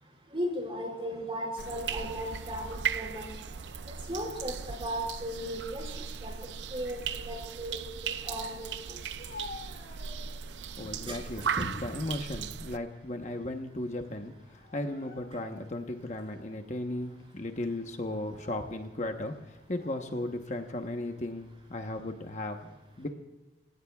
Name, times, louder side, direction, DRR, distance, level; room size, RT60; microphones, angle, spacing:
voice 1, 0.3-3.2 4.1-5.9 6.2-6.3 6.7-9.0 11.1-11.2 11.6-11.7, equal, 30° right, -1 dB, 5.5 m, -36 dB
sound 1, 1.6-12.8, right 7 dB, 85° right, 0.5 m, -37 dB
Speech, 9.0-10.6 11.1-11.7 12.1-13.4 13.6-13.8 14.6-15.6 16.2-16.3 17.1-17.3 18.1-18.8 19.7-20.4, left 2 dB, 65° left, 2.9 m, -49 dB
voice 2, 10.8-23.1, left 1 dB, 40° left, 4 dB, 1.0 m, -36 dB
29.0 x 17.0 x 2.4 m, 1.1 s
head